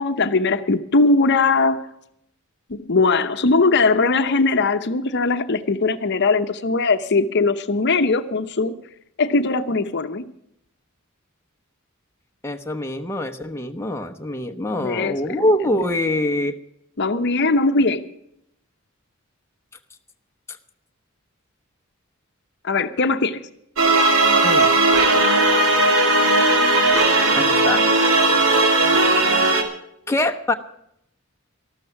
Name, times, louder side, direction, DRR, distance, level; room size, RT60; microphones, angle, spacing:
voice 1, 0.0-1.9 2.7-8.7 9.2-10.3 14.8-15.5 17.0-18.1 22.6-23.5, left 3 dB, 55° left, 0.8 m, -20 dB
voice 2, 12.4-16.6 24.4-24.8 27.4-27.8 30.1-30.5, left 1 dB, 10° left, 0.9 m, -24 dB
sound 1, 23.8-29.6, right 2 dB, 70° right, 2.5 m, -17 dB
13.5 x 13.0 x 5.8 m
head